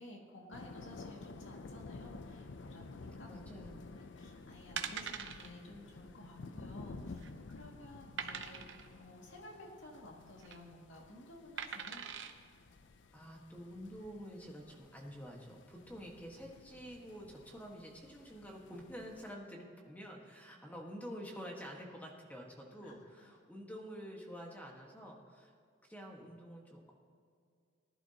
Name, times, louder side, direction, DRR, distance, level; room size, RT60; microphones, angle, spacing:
voice 1, 0.0-3.3 3.8-12.1 22.8-23.4, left 1 dB, 85° left, -1 dB, 2.3 m, -54 dB
sound 1, 0.5-19.3, left 3 dB, 70° left, 0.5 m, -52 dB
voice 2, 3.3-3.9 13.1-25.5 25.8-26.9, equal, 10° left, 0 dB, 1.5 m, -48 dB
sound 2, 4.1-4.3 4.8-5.5 5.8-6.0 6.2-6.3 6.9-7.4 8.2-8.9 10.2-10.6 11.6-12.3 12.9-13.0, right 7 dB, 70° right, 0.8 m, -42 dB
20.0 x 11.0 x 2.9 m, 2.2 s
head